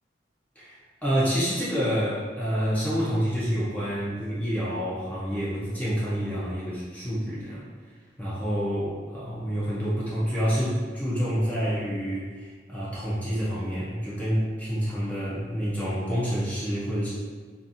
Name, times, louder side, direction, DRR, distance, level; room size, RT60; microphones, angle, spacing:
voice 1, 1.0-7.6 8.2-17.1, equal, 10° left, -9 dB, 0.5 m, -28 dB
2.6 x 2.5 x 2.4 m, 1.5 s
head